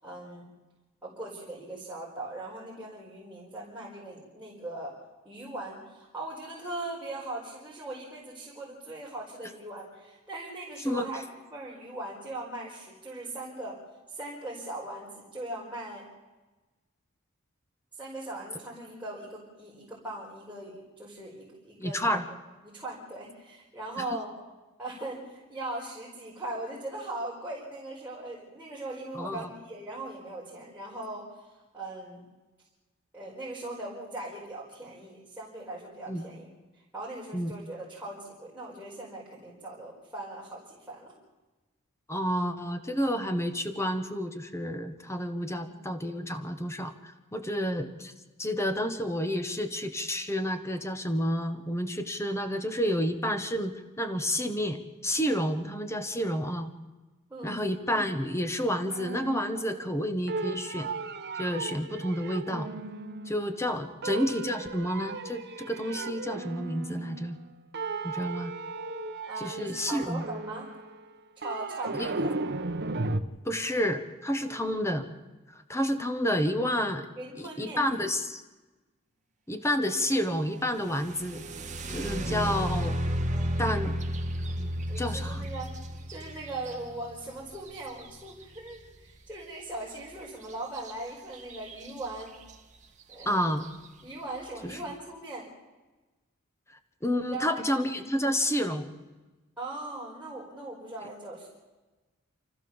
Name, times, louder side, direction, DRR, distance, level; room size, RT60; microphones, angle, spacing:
voice 1, 0.0-0.5 1.0-4.9 5.2-13.8 14.1-16.0 18.0-22.2 22.6-24.3 24.8-32.3 33.1-36.5 36.7-41.1 45.6-45.8 47.4-47.6 57.3-57.6 63.8-64.0 69.3-70.7 71.4-72.4 74.5-74.6 77.2-77.9 83.3-83.9 84.9-92.4 93.1-93.5 94.0-95.5 97.3-97.8 99.6-101.5, right 2 dB, 10° right, -7 dB, 4.8 m, -40 dB
voice 2, 21.8-22.2 29.1-29.5 36.1-36.3 37.3-37.5 42.1-48.1 48.4-56.7 57.4-60.9 61.3-62.7 63.2-67.4 68.0-68.5 69.4-70.2 71.9-72.1 73.4-75.1 75.7-77.1 77.4-78.4 79.5-81.4 81.9-83.0 83.6-84.0 84.4-84.7 85.0-85.5 93.2-93.6 94.6-94.8 96.7-98.9, equal, 15° left, 8 dB, 1.3 m, -30 dB
sound 1, 58.9-60.0 60.3-63.6 64.0-67.5 67.7-73.2, right 3 dB, 50° right, 1.1 m, -36 dB
bil logo uden melodi, 80.9-88.7 90.8-90.9 91.3-91.9 92.5-92.6 93.1-93.5, equal, 35° right, 1.7 m, -33 dB
29.0 x 14.0 x 7.1 m, 1.2 s
head